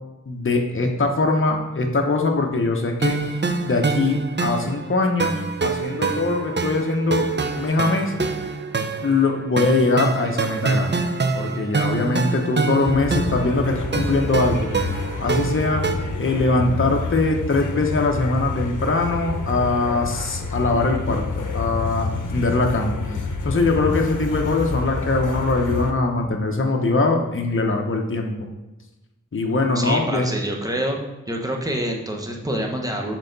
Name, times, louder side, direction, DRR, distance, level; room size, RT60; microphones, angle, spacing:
voice 1, 0.3-3.4 3.6-7.3 7.5-8.1 9.0-11.0 11.3-14.7 15.2-15.8 16.2-22.9 23.4-28.4 29.3-30.3, left 3 dB, 40° left, 2 dB, 0.8 m, -22 dB
sound 1, 3.0-15.9, right 4 dB, 35° right, 0.5 m, -25 dB
sound 2, 12.8-25.9, left 3 dB, 75° left, 0.7 m, -28 dB
voice 2, 29.7-31.0 31.3-33.2, right 1 dB, 10° right, 1 dB, 0.9 m, -26 dB
6.4 x 3.9 x 3.9 m, 1.0 s
wide cardioid pair, 70°, 31 cm